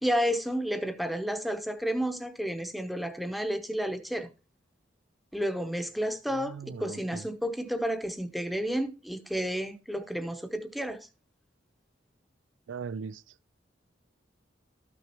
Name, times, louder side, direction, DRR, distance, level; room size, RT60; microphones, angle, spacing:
voice 1, 0.0-4.3 5.3-11.1, equal, ahead, 0.8 m, -31 dB
voice 2, 6.3-7.2 12.7-13.2, right 5 dB, 90° right, 0.4 m, -39 dB
13.0 x 6.2 x 2.9 m
head